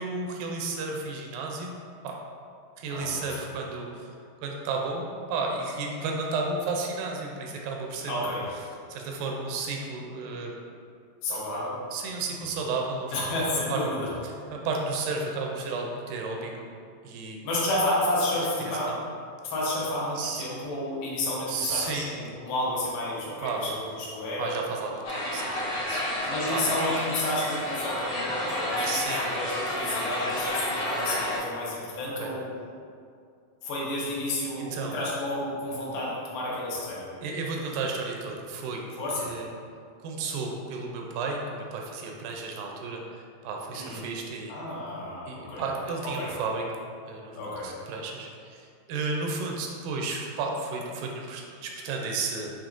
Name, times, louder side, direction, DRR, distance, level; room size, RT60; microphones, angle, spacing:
voice 1, 0.0-1.8 2.0-2.2 2.8-4.2 4.4-8.3 8.9-10.5 11.3-11.4 11.9-13.3 13.7-13.8 14.5-16.5 17.0-17.4 18.6-19.0 20.2-20.4 21.5-22.0 23.4-23.6 24.4-26.6 28.8-29.2 32.2-32.3 34.6-34.9 37.2-38.9 39.2-39.5 40.0-44.5 45.3-46.6 47.1-52.5, right 4 dB, 80° right, 0 dB, 2.1 m, -33 dB
voice 2, 2.9-3.3 8.1-8.5 11.2-11.8 13.1-14.1 17.4-18.9 19.4-24.5 26.2-32.5 33.6-37.1 38.9-39.3 43.7-44.1 44.5-45.6 46.0-46.3 47.3-47.7, left 1 dB, 85° left, -5 dB, 2.8 m, -31 dB
sound 1, 25.0-31.4, left 1 dB, 70° left, 1.6 m, -30 dB
6.9 x 2.9 x 2.5 m, 2.3 s
omnidirectional pair, 4.1 m